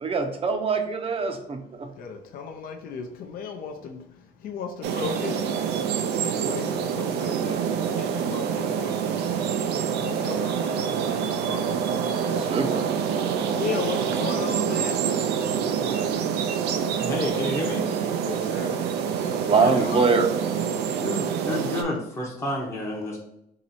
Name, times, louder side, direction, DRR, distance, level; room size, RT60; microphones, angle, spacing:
voice 1, 0.0-1.9 12.4-12.8 19.4-20.3, right 4 dB, 35° right, 0.7 m, -23 dB
voice 2, 2.0-5.5 6.1-9.0 9.7-11.9 13.5-15.0 18.2-18.8 19.2-20.2, left 6 dB, 60° left, 0.6 m, -36 dB
sound 1, 4.8-21.8, right 7 dB, 80° right, 0.5 m, -26 dB
voice 3, 16.9-17.8 19.6-19.9 21.0-23.2, left 1 dB, 15° left, 0.8 m, -30 dB
2.9 x 2.9 x 4.1 m
cardioid pair, 110°, 17 cm